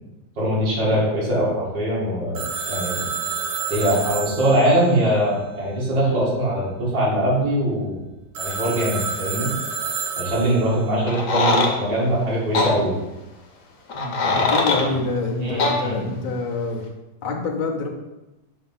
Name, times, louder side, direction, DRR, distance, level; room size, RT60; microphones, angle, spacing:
voice 1, 0.4-3.1 3.7-8.0 8.4-9.5 10.2-12.9 14.2-14.9 15.4-16.3, right 1 dB, 65° right, -7 dB, 2.7 m, -22 dB
Telephone, 2.3-6.0 8.3-10.9, right 6 dB, 80° right, 1.9 m, -30 dB
sound 1, 11.1-11.7 12.5-12.7 13.9-14.9 15.6-15.8, left 3 dB, 55° left, 1.0 m, -21 dB
voice 2, 13.9-16.8 17.2-17.9, left 3 dB, 85° left, 0 dB, 0.4 m, -26 dB
6.2 x 2.9 x 5.4 m, 1.0 s
omnidirectional pair, 2.1 m